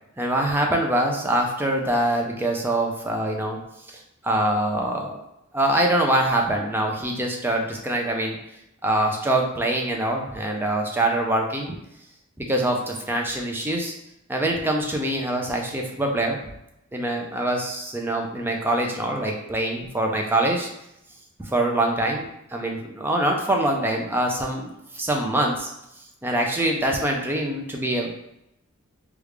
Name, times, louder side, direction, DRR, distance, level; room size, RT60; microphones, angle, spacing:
voice 1, 0.2-3.6 3.9-5.2 5.5-8.4 8.8-11.8 12.4-13.9 14.3-16.4 16.9-20.7 21.4-25.7 26.2-28.1, right 1 dB, 10° right, 1 dB, 0.4 m, -24 dB
3.3 x 2.4 x 3.1 m, 0.82 s
head